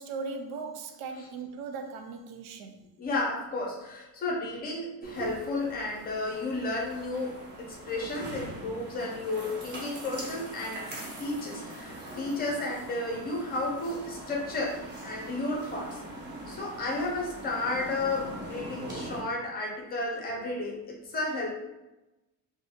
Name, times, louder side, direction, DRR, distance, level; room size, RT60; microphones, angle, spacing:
voice 1, 0.0-2.9, right 4 dB, 65° right, 0.5 m, -38 dB
voice 2, 3.0-10.8 11.2-16.0 16.5-21.5, left 2 dB, 25° left, 0.6 m, -33 dB
sound 1, 5.0-19.2, right 1 dB, 25° right, 0.6 m, -42 dB
2.7 x 2.5 x 3.5 m
cardioid pair, 175°, 40 cm